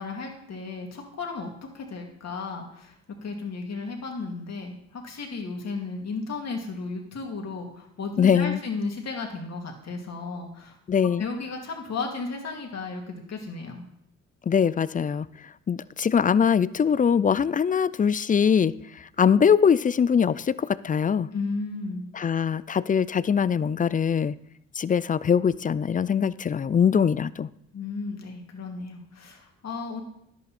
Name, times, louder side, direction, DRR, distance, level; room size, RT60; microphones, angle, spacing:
voice 1, 0.0-1.5 1.7-2.9 3.2-10.8 11.2-13.8 21.3-22.1 27.7-30.0, left 4 dB, 55° left, 2.4 m, -34 dB
voice 2, 8.2-8.6 10.9-11.3 14.5-15.3 15.7-21.3 22.1-24.3 24.8-27.5, left 7 dB, 25° left, 0.4 m, -22 dB
10.5 x 8.5 x 4.3 m
supercardioid pair, 65°, 31 cm